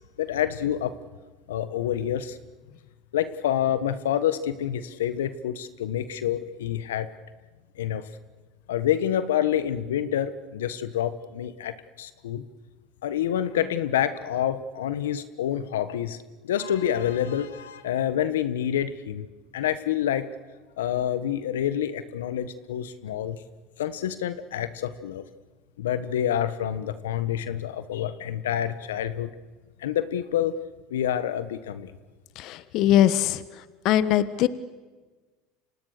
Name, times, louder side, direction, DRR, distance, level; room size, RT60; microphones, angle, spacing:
voice 1, 0.2-1.0 1.5-2.4 3.1-7.1 7.8-8.0 8.7-12.4 13.0-16.2 16.4-19.2 19.5-20.3 20.8-23.4 23.8-25.2 25.8-29.3 29.8-30.6 30.9-31.9, left 10 dB, 85° left, 13 dB, 1.3 m, -27 dB
voice 2, 32.4-33.4 33.8-34.5, left 12 dB, 60° left, 15 dB, 1.3 m, -21 dB
30.0 x 26.0 x 6.7 m, 1.3 s
hypercardioid pair, 85°, 0 cm